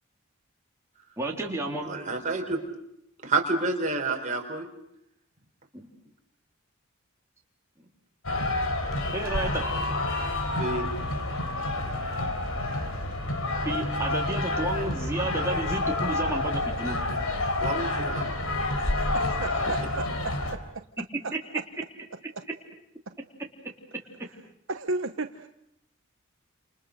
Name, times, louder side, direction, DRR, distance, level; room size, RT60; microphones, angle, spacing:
voice 1, 1.2-1.9 5.7-5.9 9.1-9.6 13.7-17.0, right 2 dB, 15° right, -1 dB, 3.5 m, -31 dB
voice 2, 1.8-2.6 3.2-4.7 10.5-10.9 17.6-18.3, right 3 dB, 35° right, 2 dB, 4.7 m, -29 dB
sound 1, 8.2-20.5, left 2 dB, 80° left, 3.8 m, -28 dB
voice 3, 19.0-20.8 22.4-22.5 23.1-23.2 24.7-25.5, right 3 dB, 60° right, 7 dB, 1.1 m, -34 dB
30.0 x 28.5 x 6.6 m, 0.78 s
head